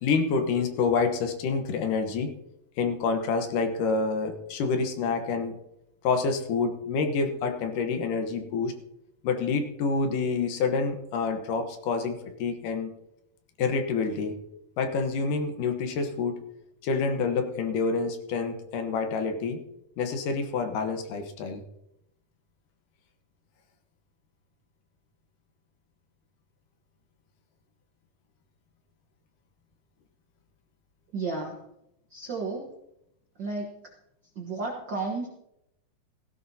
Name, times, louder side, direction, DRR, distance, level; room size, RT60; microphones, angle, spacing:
voice 1, 0.0-2.3 2.8-5.6 6.0-8.7 9.2-12.9 13.6-14.4 14.8-16.4 16.8-19.6 20.0-21.6, left 4 dB, 70° left, 5 dB, 2.6 m, -27 dB
voice 2, 31.1-31.6 32.1-32.7 33.4-33.9 34.3-35.3, right 3 dB, 60° right, 0 dB, 1.1 m, -33 dB
16.5 x 16.0 x 2.8 m, 0.84 s
omnidirectional pair, 4.0 m